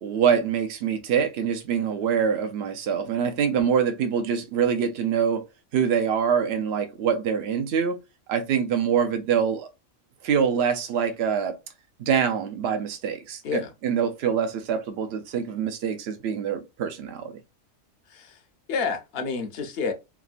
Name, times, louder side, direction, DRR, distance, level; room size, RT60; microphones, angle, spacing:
voice 1, 0.0-5.4 5.7-8.0 8.3-9.7 10.2-11.6 12.0-17.4, right 7 dB, 65° right, 0.8 m, -25 dB
voice 2, 18.1-18.4 18.7-19.9, left 5 dB, 60° left, 0.8 m, -29 dB
3.3 x 2.1 x 2.4 m
omnidirectional pair, 1.3 m